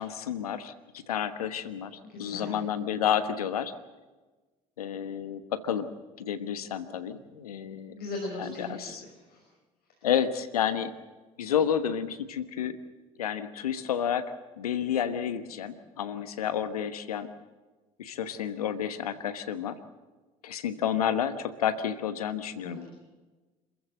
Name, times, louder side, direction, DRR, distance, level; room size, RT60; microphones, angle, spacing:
voice 1, 0.0-3.7 4.8-5.9 6.2-7.9 8.4-9.0 10.0-10.9 11.4-12.8 13.2-17.3 18.0-19.8 20.4-22.9, left 9 dB, 90° left, 12 dB, 1.3 m, -30 dB
voice 2, 2.1-2.6 7.9-8.9 9.3-9.4 22.6-22.9, left 2 dB, 60° left, 0 dB, 5.8 m, -38 dB
27.0 x 15.0 x 7.6 m, 1.2 s
hypercardioid pair, 60°, 19 cm